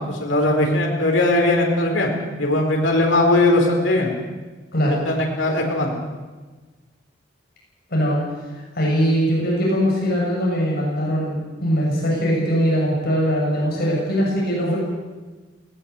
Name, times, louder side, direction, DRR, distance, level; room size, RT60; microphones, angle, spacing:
voice 1, 0.1-2.1 2.4-4.1 5.0-5.9, left 2 dB, 75° left, 0 dB, 4.5 m, -19 dB
voice 2, 8.7-14.8, equal, 55° left, -3 dB, 7.6 m, -21 dB
19.5 x 18.0 x 8.3 m, 1.3 s
head